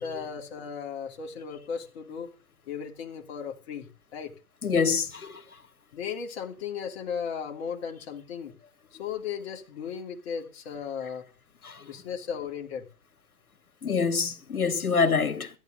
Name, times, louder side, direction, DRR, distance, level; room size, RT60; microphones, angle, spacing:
voice 1, 0.0-2.3 2.7-4.3 5.9-8.5 8.9-11.3 11.8-12.9, left 7 dB, 45° left, 3.0 m, -36 dB
voice 2, 4.6-5.4 11.6-11.8 13.8-15.5, left 5 dB, 80° left, 2.8 m, -25 dB
15.0 x 9.8 x 6.4 m
hypercardioid pair, 135°, 43 cm